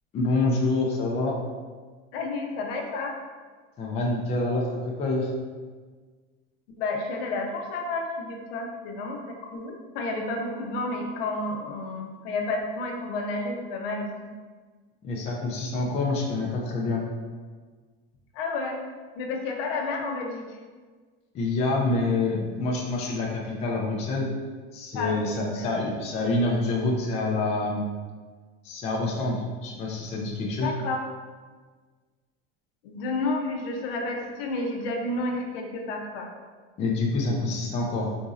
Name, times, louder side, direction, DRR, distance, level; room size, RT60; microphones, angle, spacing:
voice 1, 0.1-1.3 3.8-5.3 15.0-17.0 21.3-24.3 24.7-27.8 28.6-30.7 36.8-38.2, left 2 dB, 25° left, -2 dB, 0.4 m, -27 dB
voice 2, 2.1-3.1 6.8-14.3 18.3-18.8 19.2-20.6 24.9-25.7 30.6-31.0 32.8-36.3, left 2 dB, 75° left, 2 dB, 0.7 m, -31 dB
3.9 x 2.6 x 2.4 m, 1.4 s
supercardioid pair, 150°, 29 cm